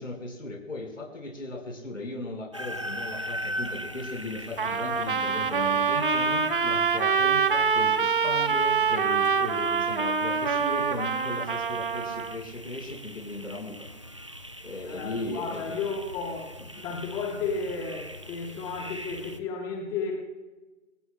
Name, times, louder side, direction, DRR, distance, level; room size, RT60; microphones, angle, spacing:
voice 1, 0.0-13.9 14.6-15.6 16.7-17.0, left 2 dB, 70° left, 1 dB, 4.9 m, -37 dB
sound 1, 2.5-19.4, equal, 25° right, 0.5 m, -41 dB
Trumpet, 4.6-12.4, right 6 dB, 40° right, 1.0 m, -25 dB
voice 2, 14.8-16.5 16.8-20.1, left 4 dB, 10° left, 2 dB, 1.3 m, -33 dB
26.0 x 17.0 x 2.2 m, 1.2 s
figure-of-eight pair, 145°, 40 cm